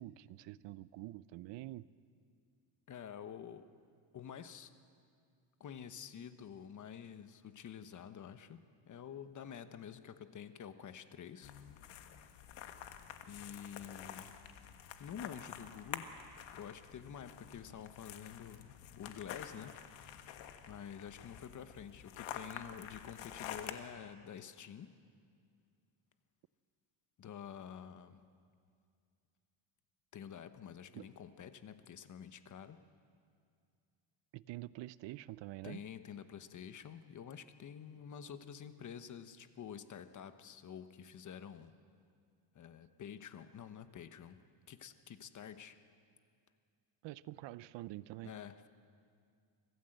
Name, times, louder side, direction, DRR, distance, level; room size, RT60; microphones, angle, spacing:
voice 1, 0.0-1.9 30.9-31.1 34.3-35.8 47.0-48.3, right 16 dB, 80° right, 18 dB, 0.7 m, -46 dB
voice 2, 2.9-3.7 4.1-4.7 5.6-11.5 13.3-14.3 15.0-16.1 16.5-19.8 20.7-24.9 27.2-28.2 30.1-32.8 35.6-41.8 42.5-44.4 44.7-45.8 48.2-48.7, left 8 dB, 45° left, 10 dB, 1.1 m, -49 dB
sound 1, 11.4-23.7, left 10 dB, 90° left, 1.5 m, -49 dB
25.0 x 16.0 x 7.9 m, 2.3 s
cardioid pair, 130°, 43 cm